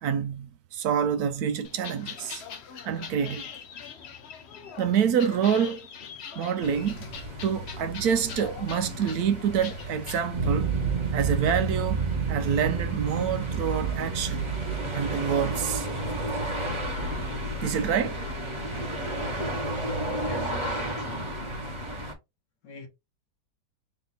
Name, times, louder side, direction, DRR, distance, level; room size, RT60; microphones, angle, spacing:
voice 1, 0.0-2.4 2.9-3.5 4.8-5.9 6.4-7.1 7.4-10.7 11.1-12.0 12.3-14.4 14.9-15.9 17.6-18.2, right 7 dB, 70° right, 1.1 m, -27 dB
sound 1, 1.6-10.2, left 7 dB, 60° left, 0.7 m, -43 dB
sound 2, 6.6-22.1, right 1 dB, 20° right, 1.2 m, -34 dB
sound 3, 10.3-18.0, right 6 dB, 35° right, 0.9 m, -31 dB
voice 2, 20.2-21.4 22.6-22.9, left 4 dB, 90° left, 1.9 m, -41 dB
4.2 x 2.8 x 4.0 m
omnidirectional pair, 1.8 m